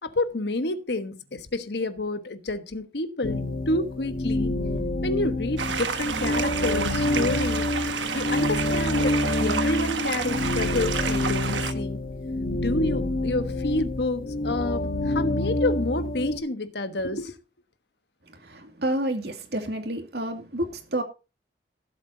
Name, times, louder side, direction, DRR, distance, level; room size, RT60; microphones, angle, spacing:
voice 1, 0.0-3.4 3.7-4.5 5.0-7.7 8.1-12.0 12.5-17.4, left 2 dB, 70° left, 1.2 m, -29 dB
sound 1, 3.2-16.4, left 1 dB, 50° left, 1.4 m, -27 dB
sound 2, 5.6-11.7, right 6 dB, 85° right, 1.3 m, -30 dB
voice 2, 18.3-21.0, right 1 dB, 65° right, 2.4 m, -29 dB
16.0 x 7.9 x 2.7 m
head